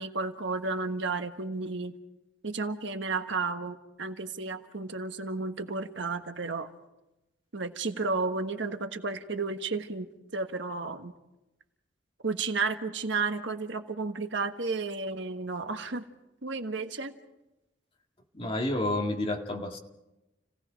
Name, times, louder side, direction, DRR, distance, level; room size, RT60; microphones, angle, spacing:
voice 1, 0.0-1.9 2.4-6.7 7.5-10.1 10.3-11.1 12.2-16.0 16.4-17.1, right 3 dB, 70° right, 7 dB, 1.4 m, -32 dB
voice 2, 18.3-19.8, left 1 dB, 30° left, 2 dB, 2.1 m, -30 dB
30.0 x 17.5 x 5.1 m, 0.97 s
head